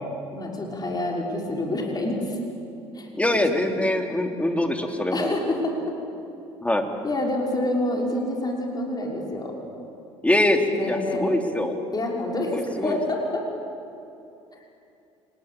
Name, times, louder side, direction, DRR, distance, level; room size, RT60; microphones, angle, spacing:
voice 1, 0.3-2.4 2.9-3.4 5.1-6.0 7.0-9.5 10.6-11.3 11.9-13.4, left 1 dB, 30° left, 0 dB, 6.0 m, -27 dB
voice 2, 3.1-5.3 6.6-6.9 10.2-10.6 10.9-11.7 12.5-13.0, left 1 dB, 10° left, 4 dB, 3.4 m, -23 dB
29.5 x 20.0 x 8.7 m, 2.8 s
hypercardioid pair, 60°, 14 cm